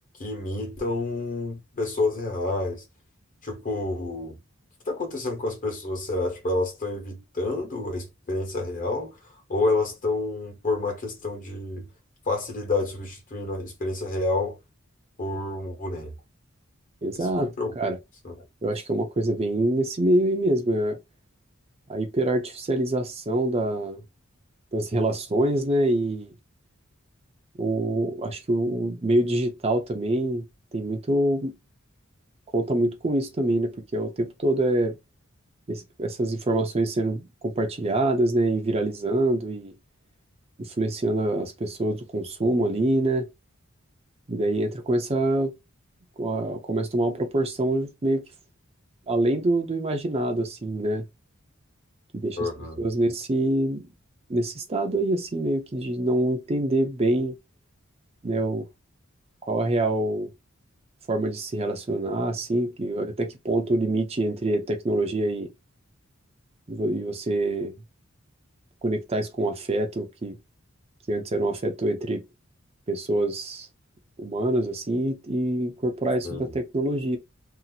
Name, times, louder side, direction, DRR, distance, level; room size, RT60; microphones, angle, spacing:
voice 1, 0.2-2.8 3.4-4.4 4.9-9.2 9.5-11.9 12.2-14.6 15.2-16.1 17.1-17.7 18.2-18.4 52.4-52.8 76.2-76.5, left 2 dB, 40° left, 1.1 m, -29 dB
voice 2, 17.0-18.0 18.6-21.0 21.9-24.0 24.7-26.3 27.6-30.4 30.7-31.5 32.5-34.9 35.7-39.7 40.6-43.3 44.3-45.5 46.2-48.2 49.1-51.1 52.1-52.5 52.8-53.9 54.3-57.3 58.2-58.7 59.5-60.3 61.1-65.5 66.7-67.7 68.8-70.4 71.1-72.2 72.9-73.7 74.2-77.2, right 1 dB, 30° right, 0.5 m, -25 dB
2.8 x 2.0 x 3.9 m
head